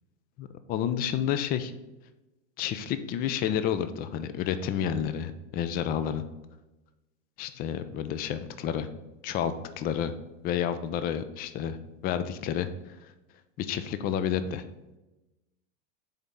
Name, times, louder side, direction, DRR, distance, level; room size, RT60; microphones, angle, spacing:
voice 1, 0.4-1.7 2.6-6.2 7.4-8.9 9.2-10.1 10.4-11.8 12.0-12.7 13.6-14.6, left 9 dB, 25° left, 12 dB, 0.4 m, -30 dB
6.9 x 4.2 x 3.6 m, 1.0 s
hypercardioid pair, 115°, 38 cm